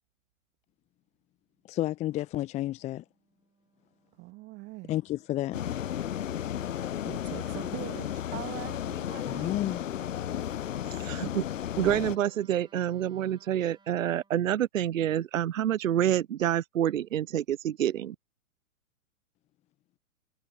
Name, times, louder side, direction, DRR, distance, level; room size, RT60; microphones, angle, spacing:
Wind instrument woodwind instrument, 1.4-14.4, right 4 dB, 10° right, 4.7 m, -65 dB
voice 1, 1.7-3.0 4.9-5.6 9.3-9.8, left 14 dB, 15° left, 0.9 m, -31 dB
voice 2, 4.1-5.0 6.5-9.6, right 21 dB, 25° right, 2.5 m, -43 dB
sound 1, 5.5-12.2, left 10 dB, 65° left, 0.6 m, -34 dB
voice 3, 11.0-11.4 11.8-18.2, right 11 dB, 65° right, 0.6 m, -27 dB
figure-of-eight pair, 110°, 42 cm